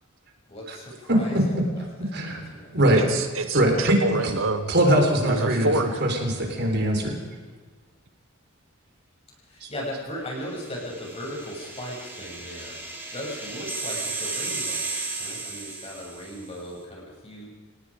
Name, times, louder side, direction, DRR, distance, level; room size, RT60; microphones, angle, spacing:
voice 1, 0.5-1.8 2.2-2.8 9.4-12.8 13.1-14.9 15.2-17.5, equal, 30° left, -2 dB, 7.5 m, -37 dB
voice 2, 2.1-2.4 2.7-3.1 3.5-4.0 4.7-7.2 9.6-9.7, right 1 dB, 50° right, 2 dB, 4.2 m, -22 dB
voice 3, 3.0-4.7 5.3-6.0, right 2 dB, 75° right, 7 dB, 1.6 m, -27 dB
sound 1, 10.5-16.5, right 3 dB, 10° right, 2.7 m, -34 dB
28.5 x 18.5 x 5.1 m, 1.4 s
head